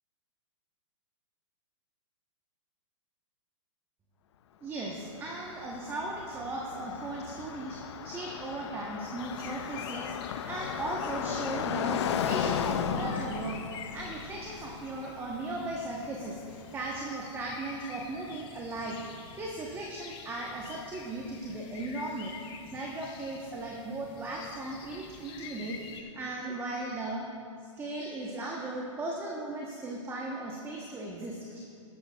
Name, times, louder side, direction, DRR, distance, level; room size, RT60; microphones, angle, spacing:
voice 1, 4.6-13.6 13.9-27.3 27.6-31.6, right 2 dB, 15° right, -1 dB, 1.1 m, -37 dB
Car passing by, 4.9-16.9, left 8 dB, 60° left, 0.6 m, -35 dB
sound 1, 9.2-26.0, left 6 dB, 30° left, 1.0 m, -48 dB
15.0 x 11.5 x 2.4 m, 2.4 s
hypercardioid pair, 125°, 16 cm